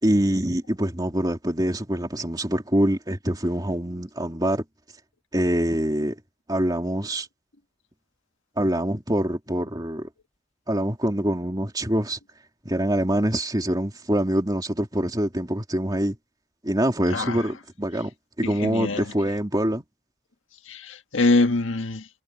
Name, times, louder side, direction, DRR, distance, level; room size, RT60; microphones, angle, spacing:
voice 1, 0.0-4.6 5.3-6.1 6.5-7.3 8.6-10.1 10.7-12.2 12.6-16.2 16.6-18.1 18.4-19.8, right 1 dB, 20° right, 3.2 m, -25 dB
voice 2, 17.1-17.4 18.4-19.1 20.7-22.1, left 2 dB, 80° left, 1.5 m, -24 dB
head